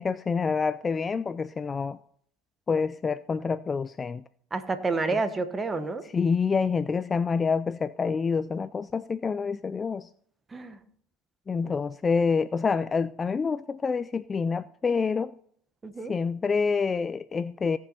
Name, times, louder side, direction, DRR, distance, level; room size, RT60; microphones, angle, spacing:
voice 1, 0.0-2.0 2.7-4.2 5.1-5.2 6.1-10.1 11.5-15.3 16.1-17.8, left 5 dB, 25° left, 0.3 m, -27 dB
voice 2, 4.5-6.0 10.5-10.8 11.6-11.7 15.8-16.1, right 3 dB, 20° right, 1.3 m, -29 dB
17.0 x 6.3 x 4.2 m
supercardioid pair, 110°, 0 cm